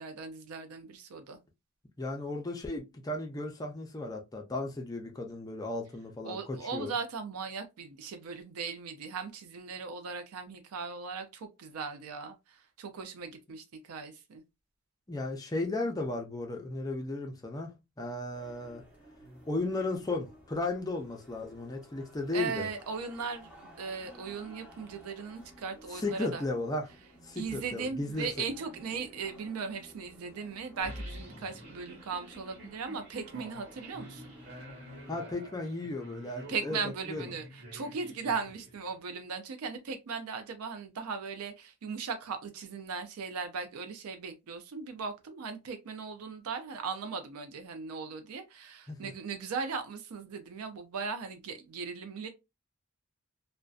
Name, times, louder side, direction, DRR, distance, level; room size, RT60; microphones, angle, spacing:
voice 1, 0.0-1.4 6.2-14.4 22.3-26.4 27.4-34.3 36.5-52.3, right 5 dB, 85° right, 0.4 m, -38 dB
voice 2, 2.0-6.9 15.1-18.8 19.5-22.7 25.9-26.8 27.2-28.3 35.1-36.8 37.1-37.2 48.9-49.1, left 2 dB, 15° left, 0.4 m, -35 dB
sound 1, 18.3-35.1, equal, 5° right, 0.7 m, -55 dB
sound 2, 30.8-39.1, equal, 50° right, 1.2 m, -47 dB
2.5 x 2.1 x 2.3 m
head